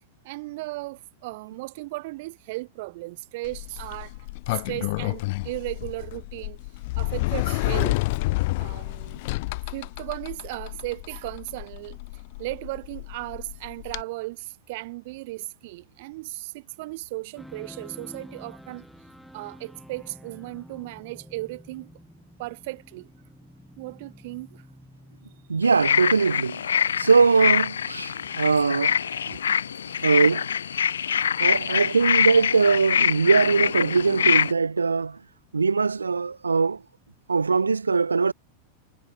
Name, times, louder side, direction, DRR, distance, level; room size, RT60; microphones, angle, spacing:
voice 1, 0.2-4.2 4.5-6.6 7.0-8.0 8.6-9.2 9.6-18.9 19.3-21.9 22.4-23.1 23.8-24.6 29.3-29.4 29.8-30.1, right 21 dB, 50° right, 1.8 m, -36 dB
Sliding door, 3.4-14.0, left 23 dB, 50° left, 3.2 m, -30 dB
sound 1, 17.4-37.3, equal, ahead, 7.8 m, -51 dB
voice 2, 25.5-26.6 27.0-29.0 29.3-29.4 30.0-30.5 31.4-35.2 35.5-36.8 37.3-38.3, right 4 dB, 75° right, 0.3 m, -21 dB
sound 2, 25.6-34.5, left 8 dB, 70° left, 0.4 m, -24 dB
figure-of-eight pair, 90°, 0 cm